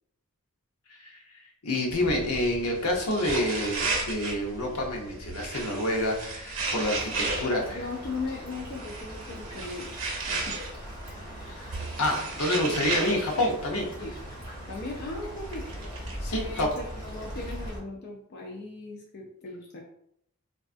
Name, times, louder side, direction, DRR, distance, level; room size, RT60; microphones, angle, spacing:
voice 1, 0.9-1.2 1.6-7.8 11.4-13.9 16.2-16.7, left 1 dB, 80° left, 1 dB, 0.7 m, -28 dB
sound 1, 1.9-17.7, right 3 dB, 60° right, 0.6 m, -36 dB
sound 2, 6.8-17.8, equal, 25° left, 1.1 m, -41 dB
voice 2, 7.4-9.9 10.2-10.6 14.0-14.1 14.7-15.7 16.3-19.8, left 3 dB, 45° left, 0 dB, 0.4 m, -38 dB
3.5 x 2.3 x 2.4 m, 0.72 s
head